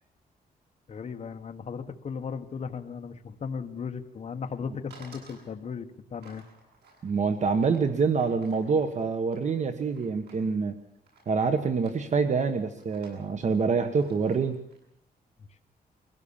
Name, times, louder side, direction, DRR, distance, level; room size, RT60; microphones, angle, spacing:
voice 1, 0.9-6.4, left 6 dB, 40° left, 6 dB, 1.4 m, -36 dB
sound 1, 4.9-5.5 6.2-10.5 11.0-11.4 11.7-12.2 12.6-14.8, right 3 dB, 80° right, 7.9 m, -56 dB
voice 2, 7.0-10.7 11.3-14.6, right 5 dB, 45° right, 9 dB, 1.4 m, -26 dB
22.5 x 16.5 x 7.2 m, 0.78 s
wide cardioid pair, 140°, 17 cm